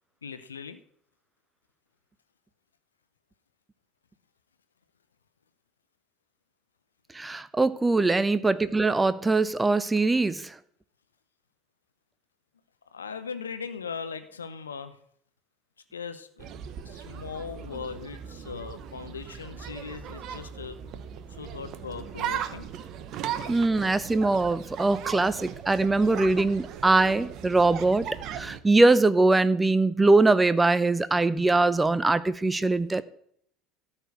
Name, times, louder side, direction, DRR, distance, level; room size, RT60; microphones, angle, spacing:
voice 1, 0.2-0.8 12.9-15.0 15.9-16.5 16.9-20.8 21.4-22.7, left 6 dB, 75° left, 11 dB, 0.7 m, -39 dB
voice 2, 7.1-10.5 23.5-33.0, right 3 dB, 15° right, 15 dB, 0.6 m, -22 dB
sound 1, 16.4-28.6, right 9 dB, 45° right, 0.9 m, -38 dB
13.0 x 4.4 x 8.0 m, 0.66 s
figure-of-eight pair, 70°, 0 cm